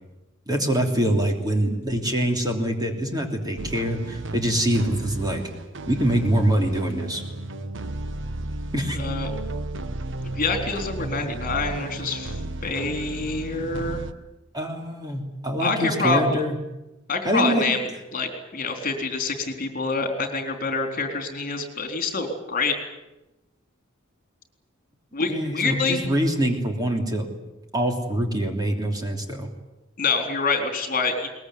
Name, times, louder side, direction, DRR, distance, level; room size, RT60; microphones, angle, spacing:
voice 1, 0.5-5.4 5.9-7.2 8.7-9.0 14.5-16.6 17.2-17.7 25.2-27.3 27.7-29.5, right 1 dB, 20° right, 3 dB, 3.1 m, -24 dB
sound 1, 3.6-14.1, right 1 dB, 65° right, 1.2 m, -33 dB
voice 2, 8.9-9.3 10.3-12.3 12.6-14.0 15.6-16.4 17.1-22.7 25.1-26.0 30.0-31.3, left 3 dB, 45° left, 5 dB, 3.8 m, -26 dB
22.5 x 20.5 x 9.5 m, 0.99 s
head